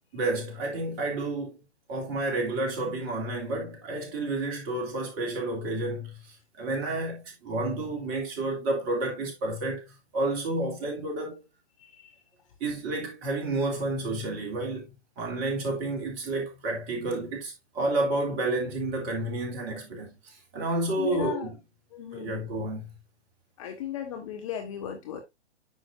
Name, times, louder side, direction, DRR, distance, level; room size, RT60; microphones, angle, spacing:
voice 1, 0.1-1.6 1.9-9.8 10.1-11.4 12.6-14.9 15.2-21.5 22.1-22.9, right 2 dB, 25° right, 3.1 m, -30 dB
voice 2, 11.8-12.2 21.0-21.5 21.9-22.4 23.6-25.2, left 10 dB, 30° left, 1.0 m, -36 dB
9.4 x 6.1 x 2.5 m
figure-of-eight pair, 130°, 35 cm